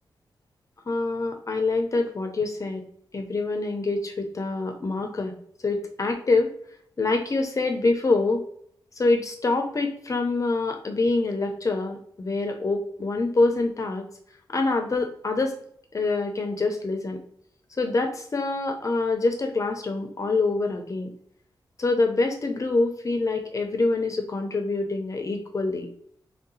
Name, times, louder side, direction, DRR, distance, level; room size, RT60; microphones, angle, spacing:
voice 1, 0.9-2.8 3.1-5.3 5.6-6.5 7.0-8.4 9.0-14.1 14.5-15.5 15.9-17.2 17.8-21.1 21.8-25.9, left 3 dB, 40° left, 5 dB, 0.7 m, -25 dB
3.2 x 2.7 x 4.0 m, 0.66 s
cardioid pair, 80°, 8 cm